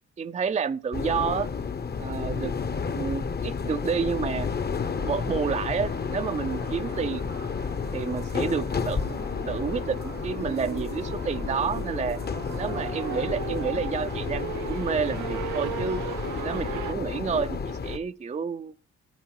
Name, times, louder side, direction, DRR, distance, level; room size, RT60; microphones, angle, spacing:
voice 1, 0.2-1.5 2.0-2.5 2.9-4.5 5.0-7.3 7.9-9.1 9.5-12.2 12.5-16.0 16.4-18.7, right 6 dB, 25° right, 0.5 m, -30 dB
sound 1, 0.9-18.0, left 5 dB, 30° left, 0.9 m, -31 dB
sound 2, 4.8-16.9, right 13 dB, 80° right, 0.8 m, -39 dB
13.0 x 9.2 x 4.7 m
cardioid pair, 90°, 30 cm